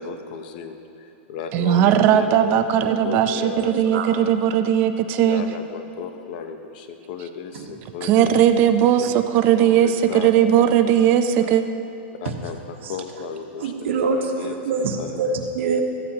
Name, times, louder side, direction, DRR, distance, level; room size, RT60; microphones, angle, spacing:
voice 1, 0.0-2.3 2.8-4.4 5.2-8.5 9.6-10.3 10.8-10.9 11.4-11.5 12.2-12.6 12.9-13.7 14.0-15.2, left 6 dB, 45° left, 7 dB, 0.8 m, -34 dB
voice 2, 1.5-5.5 8.0-11.6, right 10 dB, 30° right, 9 dB, 0.5 m, -18 dB
voice 3, 2.4-4.1 7.5-7.7 12.8-12.9 13.6-15.8, right 4 dB, 75° right, 2 dB, 1.3 m, -26 dB
14.5 x 13.5 x 2.9 m, 2.8 s
supercardioid pair, 170°, 7 cm